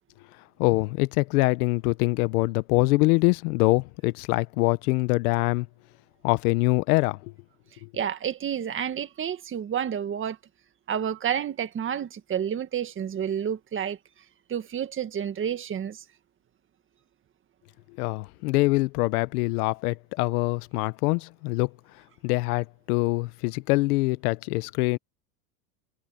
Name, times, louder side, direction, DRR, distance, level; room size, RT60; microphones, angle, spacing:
voice 1, 0.6-5.7 6.2-7.3 7.8-7.9 18.0-21.7 22.2-25.0, left 23 dB, 70° left, 0.9 m, -24 dB
voice 2, 7.9-10.4 10.9-14.0 14.5-16.0, right 9 dB, 25° right, 1.8 m, -30 dB
supercardioid pair, 140°, 47 cm